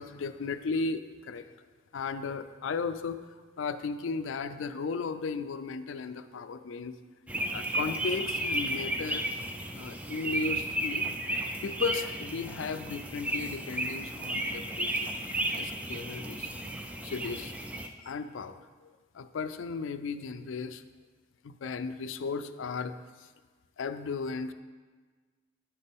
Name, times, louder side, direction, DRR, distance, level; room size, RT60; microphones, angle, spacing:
voice 1, 0.0-1.4 1.9-3.2 3.6-6.9 7.5-9.3 9.7-11.1 11.6-15.1 15.5-16.7 17.0-17.6 18.0-20.8 21.4-23.0 23.8-24.5, left 4 dB, 75° left, 11 dB, 0.4 m, -35 dB
sound 1, 7.3-17.9, right 1 dB, 5° right, 0.3 m, -33 dB
9.5 x 6.5 x 3.5 m, 1.4 s
head